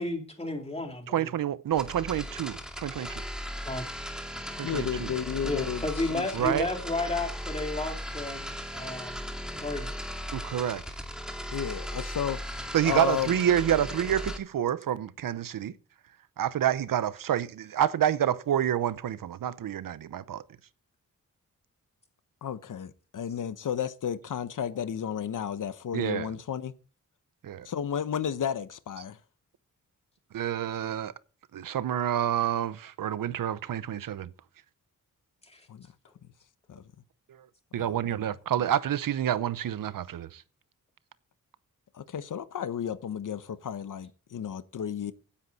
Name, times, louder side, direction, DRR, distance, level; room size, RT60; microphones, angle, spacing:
voice 1, 0.0-1.3 3.6-3.9 5.4-9.2 9.5-9.9 35.5-35.6, left 2 dB, 20° left, 3.2 m, -33 dB
voice 2, 1.1-3.2 4.6-5.1 6.3-6.7 10.3-10.8 12.7-15.7 16.4-20.4 25.9-26.3 27.4-27.7 30.3-31.1 31.5-34.3 37.7-40.4, right 10 dB, 85° right, 0.8 m, -28 dB
sound 1, 1.7-14.4, equal, ahead, 2.3 m, -37 dB
voice 3, 4.6-6.4 11.5-13.3 22.4-26.7 27.6-29.2 35.7-35.8 36.7-36.8 37.8-38.0 41.9-45.1, left 8 dB, 70° left, 0.9 m, -33 dB
16.0 x 10.0 x 4.2 m
wide cardioid pair, 115°, 33 cm